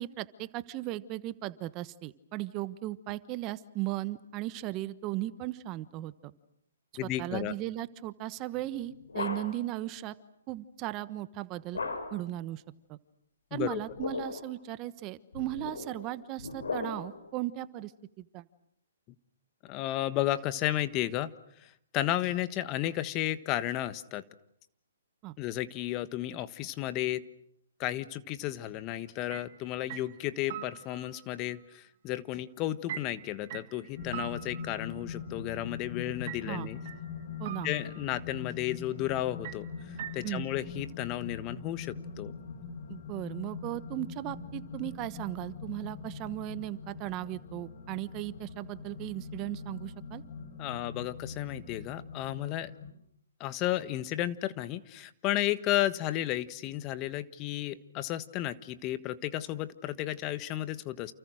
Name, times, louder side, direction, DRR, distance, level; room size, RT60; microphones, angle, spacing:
voice 1, 0.0-6.3 7.0-10.1 10.5-11.8 12.1-12.6 12.9-13.0 13.5-17.9 18.2-18.5 25.2-25.3 36.4-36.7 37.4-37.7 40.2-40.5 42.9-50.2, right 15 dB, 30° right, 14 dB, 1.2 m, -37 dB
voice 2, 7.0-7.5 13.5-13.8 19.7-21.3 21.9-24.2 25.4-27.2 27.8-36.8 37.6-39.7 40.1-42.3 50.6-52.7 53.4-61.1, left 14 dB, 30° left, 13 dB, 1.4 m, -33 dB
sound 1, 8.6-9.8 11.7-12.4 13.7-14.5 15.3-17.3, left 4 dB, 85° left, 7.0 m, -38 dB
sound 2, 29.3-29.5 29.9-31.3 32.9-35.2 36.3-37.1 37.4-38.3 39.4-40.5, right 12 dB, 45° right, 2.6 m, -43 dB
sound 3, 34.0-52.9, left 5 dB, 50° left, 4.8 m, -42 dB
29.5 x 29.5 x 6.4 m, 0.69 s
hypercardioid pair, 145°, 0 cm